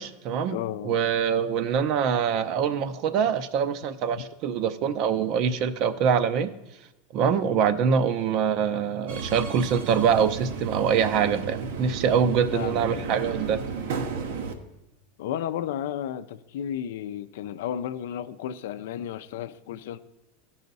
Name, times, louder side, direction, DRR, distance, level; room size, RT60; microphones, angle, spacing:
voice 1, 0.0-0.6 0.8-6.5 7.1-13.6, right 7 dB, 45° right, 0.5 m, -24 dB
voice 2, 0.5-1.0 4.1-4.2 7.2-7.6 12.5-13.2 15.2-20.0, left 10 dB, 75° left, 0.5 m, -33 dB
Subway metro underground, 9.1-14.5, right 5 dB, 80° right, 0.9 m, -33 dB
14.5 x 5.6 x 4.0 m
supercardioid pair, 150°, 0 cm